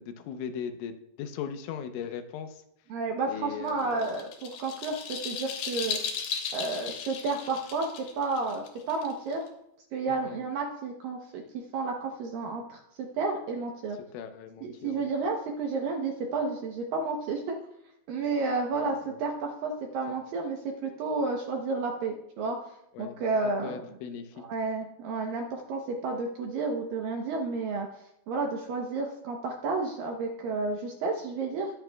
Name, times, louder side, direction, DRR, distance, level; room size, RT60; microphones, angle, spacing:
voice 1, 0.0-2.6 3.2-4.1 10.1-10.4 14.1-15.1 18.7-19.2 22.9-23.2 23.6-24.4, left 7 dB, 85° left, 7 dB, 3.3 m, -39 dB
voice 2, 2.9-6.2 6.5-7.9 8.2-9.4 9.9-11.4 11.7-12.8 13.2-14.0 14.8-17.6 18.1-22.6 23.0-23.9 24.5-27.9 28.3-31.7, right 3 dB, 80° right, 1 dB, 2.0 m, -31 dB
sound 1, 3.7-9.5, left 6 dB, 70° left, 2.7 m, -36 dB
21.0 x 8.1 x 2.3 m, 0.80 s
omnidirectional pair, 5.3 m